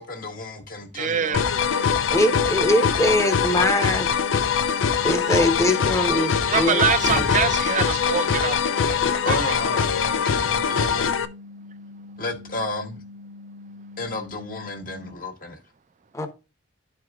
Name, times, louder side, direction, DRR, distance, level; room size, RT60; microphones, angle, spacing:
voice 1, 0.0-1.4 9.2-9.9 10.2-11.2 12.2-13.0 14.0-15.6, left 2 dB, 50° left, 1.5 m, -32 dB
voice 2, 1.0-1.4 6.5-9.0 9.3-9.6, right 7 dB, 40° right, 0.5 m, -25 dB
sound 1, 1.3-11.2, left 7 dB, 80° left, 0.6 m, -23 dB
sound 2, 1.3-15.1, left 2 dB, 85° right, 0.7 m, -43 dB
voice 3, 2.1-4.1 5.0-6.9 16.1-16.3, left 1 dB, 15° left, 1.0 m, -22 dB
sound 3, 6.8-7.7 8.0-8.1, equal, 25° right, 0.8 m, -33 dB
11.5 x 4.7 x 2.4 m
head